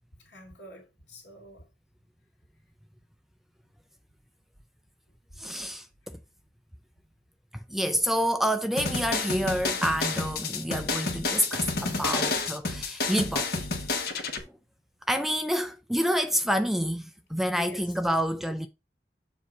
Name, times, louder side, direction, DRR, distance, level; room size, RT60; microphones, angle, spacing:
voice 1, 0.2-1.7 12.1-12.3 17.6-18.1, equal, 80° left, 2.6 m, -49 dB
voice 2, 5.4-5.9 7.5-13.7 14.0-14.3 15.1-18.7, equal, ahead, 0.4 m, -28 dB
sound 1, 8.8-14.4, left 3 dB, 60° left, 1.2 m, -30 dB
7.1 x 2.8 x 5.7 m
head